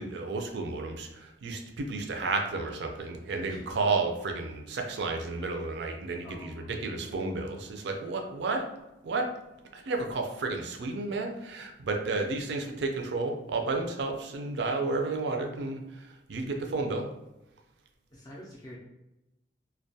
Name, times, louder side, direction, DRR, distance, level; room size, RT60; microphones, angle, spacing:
voice 1, 0.0-8.7 9.0-9.3 9.7-17.1, right 3 dB, 65° right, 3 dB, 0.4 m, -32 dB
voice 2, 6.2-7.2 18.1-18.8, equal, 20° left, -5 dB, 0.3 m, -47 dB
2.2 x 2.1 x 2.6 m, 0.93 s
head